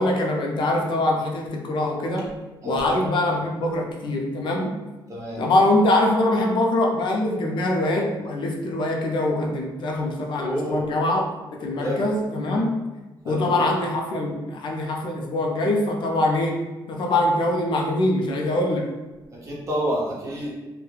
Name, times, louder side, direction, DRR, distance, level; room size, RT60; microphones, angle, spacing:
voice 1, 0.0-2.3 2.6-4.8 5.4-11.3 11.5-12.8 13.3-18.9, left 1 dB, 70° left, 0 dB, 0.4 m, -23 dB
voice 2, 5.1-5.4 10.4-10.8 11.7-12.1 13.2-13.6 19.4-20.5, equal, 40° right, -5 dB, 0.8 m, -29 dB
2.3 x 2.1 x 3.1 m, 1.1 s
wide cardioid pair, 145°, 8 cm